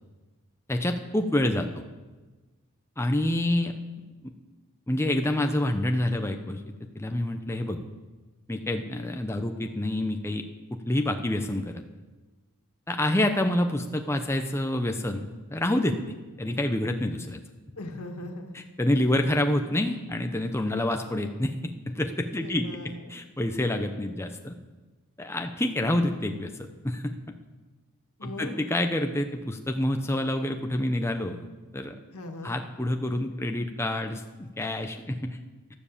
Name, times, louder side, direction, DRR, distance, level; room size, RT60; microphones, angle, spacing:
voice 1, 0.7-1.7 3.0-3.7 4.9-6.6 7.0-7.8 8.5-10.4 10.7-11.8 12.9-16.0 16.4-17.4 18.5-24.5 25.2-27.2 28.2-31.5 31.7-31.9 32.4-35.4, left 1 dB, 10° left, 5 dB, 0.7 m, -27 dB
voice 2, 17.7-18.6 22.4-23.2 28.2-28.6 32.1-32.5, left 1 dB, 80° left, 4 dB, 1.9 m, -39 dB
12.0 x 12.0 x 7.2 m, 1.2 s
head